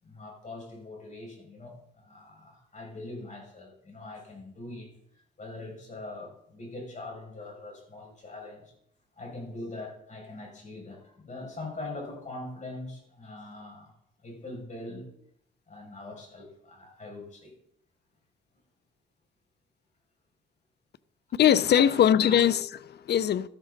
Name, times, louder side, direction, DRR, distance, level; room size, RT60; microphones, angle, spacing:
voice 1, 0.0-4.9 5.4-8.7 9.2-13.9 14.2-15.1 15.7-17.5 21.7-22.3, left 2 dB, 40° left, 6.4 m, -42 dB
voice 2, 21.4-23.5, left 9 dB, 55° left, 0.7 m, -21 dB
13.0 x 12.5 x 4.0 m
cardioid pair, 90°, 20 cm